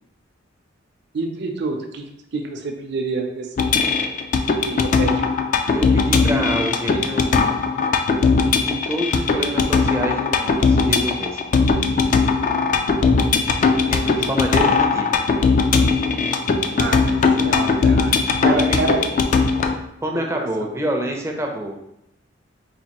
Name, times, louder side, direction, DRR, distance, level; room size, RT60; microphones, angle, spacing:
voice 1, 1.1-2.1 2.3-3.7 4.6-5.1 12.9-13.6 14.0-14.2 16.7-19.0 20.1-20.5, right 3 dB, 60° right, 3 dB, 0.5 m, -28 dB
sound 1, 3.6-19.7, left 4 dB, 40° left, 0.3 m, -19 dB
voice 2, 5.7-7.4 8.6-11.5 13.9-15.2 18.4-18.8 20.0-21.8, right 1 dB, 15° right, 1 dB, 0.5 m, -27 dB
4.2 x 2.6 x 2.9 m, 0.79 s
head